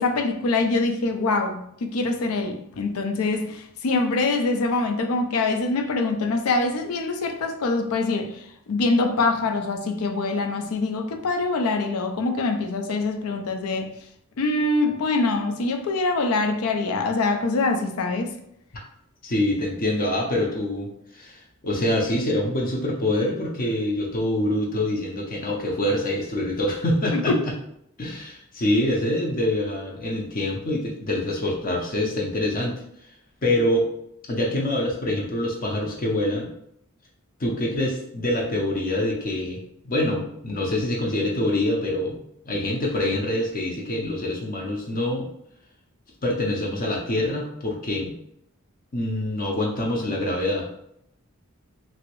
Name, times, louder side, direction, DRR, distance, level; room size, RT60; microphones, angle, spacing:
voice 1, 0.0-13.9 14.4-18.3 27.1-27.4, left 3 dB, 90° left, 6 dB, 0.5 m, -24 dB
voice 2, 19.2-27.3 28.0-32.8 33.4-33.9 34.3-36.5 37.4-45.3 46.2-48.1 48.9-50.7, left 1 dB, 40° left, -1 dB, 0.5 m, -25 dB
3.0 x 2.6 x 2.9 m, 0.74 s
head